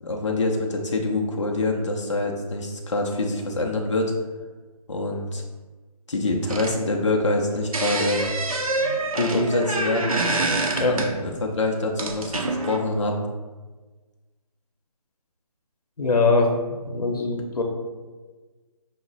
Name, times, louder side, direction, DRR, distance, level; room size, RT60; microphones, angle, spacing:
voice 1, 0.0-4.1 4.9-5.4 6.1-8.2 9.1-10.2 10.8-13.3, left 2 dB, 50° left, 0 dB, 0.6 m, -25 dB
sound 1, 6.5-7.4 7.7-11.5 12.0-12.8, right 2 dB, 65° right, 0.6 m, -26 dB
voice 2, 16.0-16.5 16.8-17.6, left 3 dB, 85° left, 2 dB, 0.8 m, -21 dB
5.7 x 2.0 x 3.9 m, 1.3 s
hypercardioid pair, 180°, 19 cm